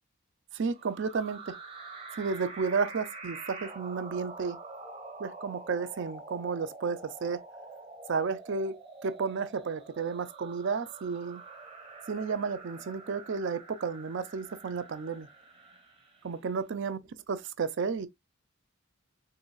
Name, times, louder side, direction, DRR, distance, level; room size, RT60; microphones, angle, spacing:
voice 1, 0.5-1.6 2.2-4.6 5.2-7.4 8.1-11.4 12.1-15.3 16.2-17.0 17.3-18.1, right 5 dB, 55° right, 0.4 m, -32 dB
sound 1, 0.7-16.4, right 3 dB, 25° right, 1.0 m, -46 dB
3.9 x 3.8 x 2.2 m
head